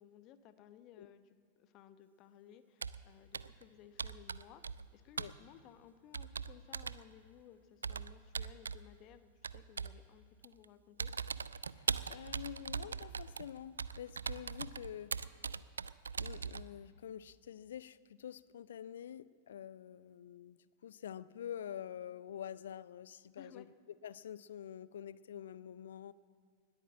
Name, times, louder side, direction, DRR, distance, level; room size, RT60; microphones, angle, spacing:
voice 1, 0.0-11.1 23.4-23.7, left 9 dB, 40° left, 12 dB, 0.8 m, -59 dB
Computer keyboard, 2.8-3.1 3.3-3.6 4.0-4.9 5.2-5.4 6.1-7.0 7.8-8.8 9.4-10.0 10.4-10.6 11.0-16.7, right 5 dB, 75° right, 0.3 m, -40 dB
voice 2, 11.7-15.1 16.2-23.7 24.0-26.1, left 9 dB, 60° left, 19 dB, 0.3 m, -47 dB
20.0 x 9.0 x 7.4 m, 2.2 s
figure-of-eight pair, 90°, 0 cm